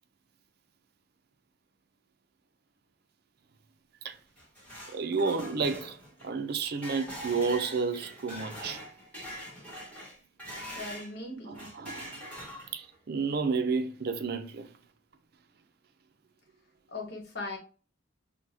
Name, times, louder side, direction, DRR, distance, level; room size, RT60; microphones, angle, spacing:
sound 1, 4.1-11.1 11.5-13.0, equal, 5° left, 1.5 m, -43 dB
voice 1, 4.9-6.0 6.2-8.8 11.5-12.2 12.7-14.7, right 4 dB, 55° right, 0.5 m, -31 dB
voice 2, 10.7-11.7 16.9-17.6, left 2 dB, 60° left, 1.3 m, -39 dB
6.0 x 2.2 x 2.7 m
head